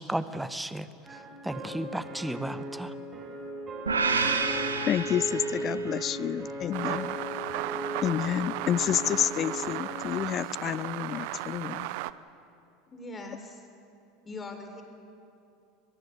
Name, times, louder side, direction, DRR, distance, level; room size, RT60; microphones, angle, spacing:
voice 1, 0.0-3.0, right 1 dB, 5° right, 13 dB, 1.1 m, -34 dB
sound 1, 1.0-10.5, right 1 dB, 35° right, 7.3 m, -38 dB
sound 2, 3.9-6.1, right 4 dB, 85° right, 1.7 m, -29 dB
voice 2, 4.9-7.2 8.0-11.9, left 10 dB, 40° left, 20 dB, 0.6 m, -29 dB
sound 3, 6.7-12.1, right 16 dB, 60° right, 0.7 m, -35 dB
voice 3, 12.9-13.7 14.2-14.8, left 2 dB, 25° left, 5 dB, 4.4 m, -41 dB
22.0 x 21.5 x 8.4 m, 2.7 s
figure-of-eight pair, 80°, 0 cm